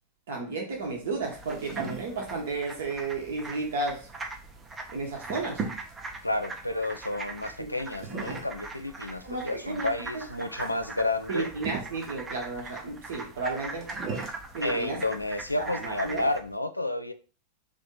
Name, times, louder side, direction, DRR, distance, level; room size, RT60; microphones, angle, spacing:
voice 1, 0.3-4.1 4.9-5.6 7.6-7.7 9.2-9.9 10.1-10.2 11.3-13.9 14.5-15.0 15.6-16.3, right 3 dB, 60° right, 1.1 m, -33 dB
sound 1, 0.7-16.6, right 5 dB, 35° right, 1.0 m, -43 dB
sound 2, 1.3-16.4, right 3 dB, 20° right, 0.6 m, -41 dB
voice 2, 6.2-11.5 14.6-17.1, left 2 dB, 85° left, 0.4 m, -31 dB
3.5 x 2.8 x 3.7 m
figure-of-eight pair, 90°, 0 cm